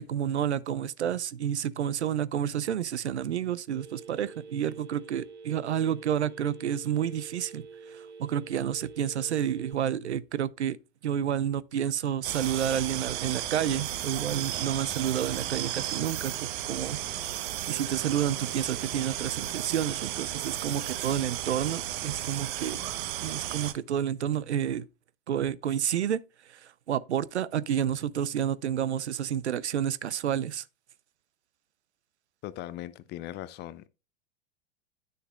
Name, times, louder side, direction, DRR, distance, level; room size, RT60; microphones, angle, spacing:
voice 1, 0.0-10.8 11.0-17.0 17.7-22.8 23.2-24.9 25.3-26.2 26.5-30.6, right 9 dB, 85° right, 0.6 m, -30 dB
Telephone, 3.7-9.7, right 5 dB, 30° right, 1.7 m, -47 dB
sound 1, 12.2-23.7, right 12 dB, 50° right, 0.9 m, -34 dB
voice 2, 32.4-33.9, left 14 dB, 30° left, 0.6 m, -39 dB
9.9 x 6.6 x 2.3 m
hypercardioid pair, 100°, 33 cm